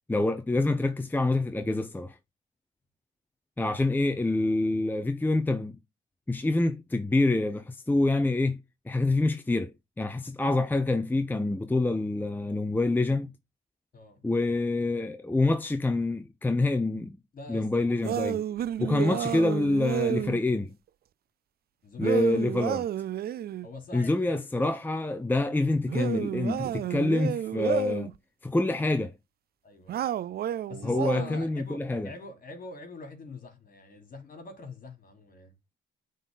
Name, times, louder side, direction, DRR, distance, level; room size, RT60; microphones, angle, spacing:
voice 1, 0.1-2.2 3.6-5.7 6.3-8.6 8.9-9.7 10.0-13.3 14.2-17.2 17.5-18.4 18.8-20.7 22.0-22.8 23.9-28.1 28.4-29.1 30.8-32.1, left 2 dB, 10° left, 0.7 m, -26 dB
voice 2, 17.3-17.9 18.9-19.2 21.8-22.8 23.6-24.4 27.1-27.4 29.6-30.0 30.7-35.5, left 3 dB, 45° left, 3.3 m, -44 dB
sound 1, 18.0-20.4 22.0-23.7 25.9-28.1 29.9-31.4, right 11 dB, 50° right, 0.4 m, -31 dB
8.1 x 4.2 x 3.9 m
cardioid pair, 90°, 20 cm